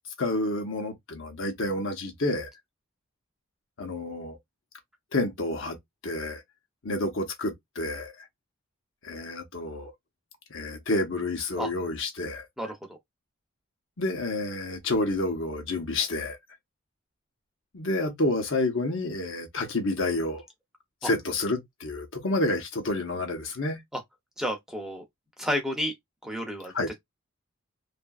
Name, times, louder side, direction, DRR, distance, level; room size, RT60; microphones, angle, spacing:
voice 1, 0.2-2.5 3.8-4.4 5.1-5.8 6.0-6.4 6.8-8.1 9.0-9.9 10.5-12.5 14.0-16.4 17.7-20.4 21.0-23.8 26.7-26.9, left 2 dB, 70° left, 1.0 m, -29 dB
voice 2, 12.6-13.0 21.0-21.1 23.9-24.0 24.4-25.0 25.4-25.9 26.2-27.0, equal, 5° right, 0.7 m, -31 dB
2.7 x 2.5 x 2.3 m
head